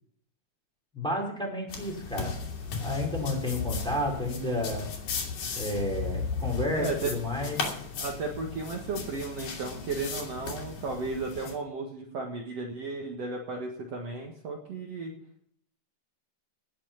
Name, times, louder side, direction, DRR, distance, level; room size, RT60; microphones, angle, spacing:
voice 1, 0.9-2.4 2.8-4.9 5.5-7.6, left 1 dB, ahead, -2 dB, 4.9 m, -31 dB
sound 1, 1.7-11.5, left 5 dB, 70° left, 4.3 m, -36 dB
voice 2, 6.7-7.1 8.0-15.1, right 3 dB, 50° right, 0 dB, 2.5 m, -34 dB
19.0 x 7.5 x 5.8 m, 0.64 s
omnidirectional pair, 4.0 m